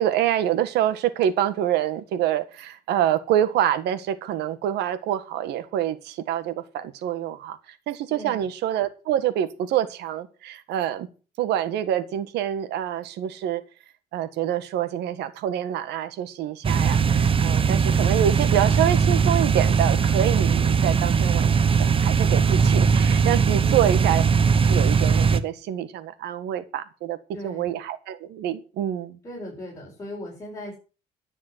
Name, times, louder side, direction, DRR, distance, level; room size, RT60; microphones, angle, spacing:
voice 1, 0.0-11.1 11.4-13.6 14.1-21.5 21.8-24.2 24.7-27.2 27.4-29.2, right 11 dB, 80° right, 12 dB, 1.7 m, -26 dB
voice 2, 8.1-8.5 23.6-23.9 27.3-27.7 29.2-30.8, equal, 20° left, -4 dB, 7.6 m, -38 dB
sound 1, 16.6-25.4, right 6 dB, 30° right, 1.1 m, -20 dB
12.5 x 7.3 x 8.0 m, 0.35 s
cardioid pair, 110°, 17 cm